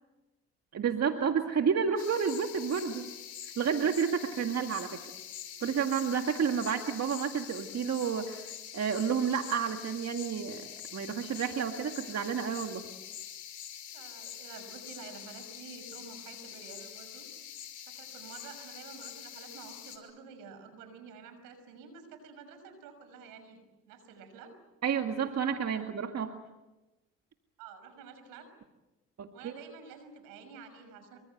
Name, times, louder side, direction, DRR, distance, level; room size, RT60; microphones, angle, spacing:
voice 1, 0.7-3.1 3.6-4.9 5.6-12.9 24.8-26.3 29.2-29.5, right 7 dB, 50° right, 5 dB, 2.1 m, -30 dB
sound 1, 2.0-20.0, left 9 dB, 65° left, 5.6 m, -45 dB
voice 2, 13.9-17.3 17.9-24.5 25.7-25.9 27.6-28.5 29.3-31.2, right 5 dB, 80° right, 9 dB, 6.0 m, -50 dB
27.0 x 25.0 x 8.0 m, 1.1 s
hypercardioid pair, 60°, 33 cm